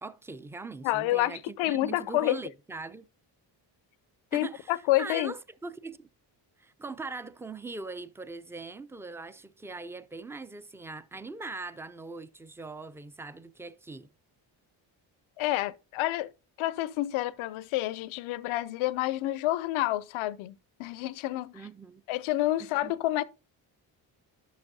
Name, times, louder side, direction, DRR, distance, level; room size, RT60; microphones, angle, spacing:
voice 1, 0.0-3.1 4.3-6.1 6.6-14.1 21.5-22.0 22.6-22.9, right 3 dB, 5° right, 0.3 m, -41 dB
voice 2, 0.8-2.4 4.3-5.3 15.4-16.3 16.6-21.6 22.1-23.2, left 16 dB, 90° left, 0.6 m, -29 dB
11.0 x 6.1 x 2.7 m
cardioid pair, 70°, 47 cm